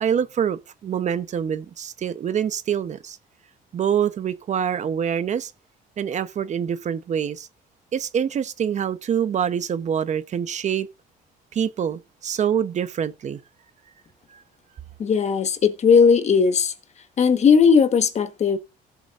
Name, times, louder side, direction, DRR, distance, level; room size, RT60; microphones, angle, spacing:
voice 1, 0.0-3.2 3.7-5.5 6.0-7.5 7.9-10.9 11.5-13.4 14.3-14.4, right 8 dB, 45° right, 0.9 m, -25 dB
voice 2, 15.0-16.7 17.2-18.6, left 6 dB, 40° left, 1.4 m, -17 dB
18.0 x 7.0 x 2.5 m
cardioid pair, 110°, 17 cm